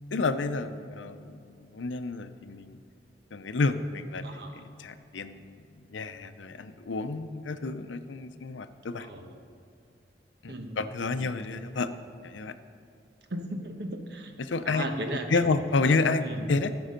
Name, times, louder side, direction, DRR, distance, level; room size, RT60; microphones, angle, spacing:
voice 1, 0.1-1.4 1.7-2.8 3.3-4.3 4.5-5.6 5.9-9.1 10.4-11.9 12.2-12.5 14.4-14.8 15.3-16.2 16.5-16.7, left 3 dB, 90° left, 10 dB, 0.6 m, -29 dB
voice 2, 4.2-4.6 9.0-9.4 10.5-10.8 11.1-11.4 13.3-14.3 14.6-15.6 16.2-16.5, right 1 dB, 60° right, 5 dB, 1.1 m, -36 dB
17.5 x 6.1 x 5.2 m, 2.4 s
head